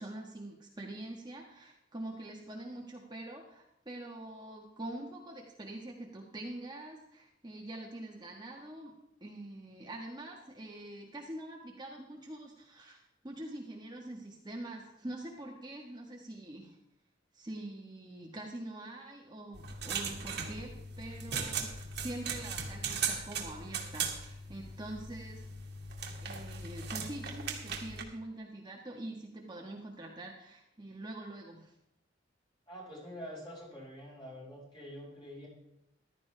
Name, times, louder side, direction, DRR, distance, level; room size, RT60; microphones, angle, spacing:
voice 1, 0.0-8.9 9.2-16.8 17.3-25.4 26.2-31.7, right 1 dB, 25° right, -1 dB, 1.4 m, -45 dB
sound 1, 19.5-28.0, right 5 dB, 60° right, 1.8 m, -38 dB
voice 2, 32.7-35.5, equal, 25° left, -4 dB, 5.6 m, -46 dB
14.5 x 12.5 x 3.4 m, 0.83 s
head